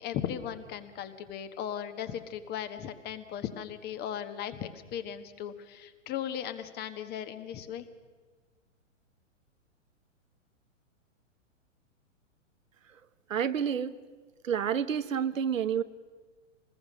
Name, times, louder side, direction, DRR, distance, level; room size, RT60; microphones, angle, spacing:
voice 1, 0.0-7.8, left 9 dB, 25° left, 10 dB, 1.4 m, -37 dB
voice 2, 13.3-13.9 14.4-15.8, right 8 dB, 80° right, 12 dB, 1.1 m, -29 dB
25.0 x 20.5 x 6.4 m, 1.4 s
hypercardioid pair, 125°, 39 cm